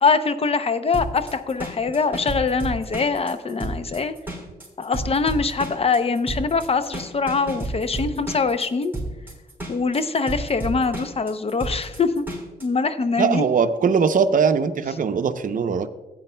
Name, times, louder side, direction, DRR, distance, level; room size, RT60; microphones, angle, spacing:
voice 1, 0.0-4.1 4.8-9.0 9.7-12.2 12.6-13.4, left 4 dB, 40° left, 10 dB, 0.6 m, -23 dB
sound 1, 0.9-12.6, right 2 dB, 15° right, 3.6 m, -32 dB
voice 2, 13.2-15.9, right 6 dB, 60° right, 9 dB, 0.7 m, -20 dB
16.0 x 9.1 x 2.2 m, 1.2 s
cardioid pair, 90°, 16 cm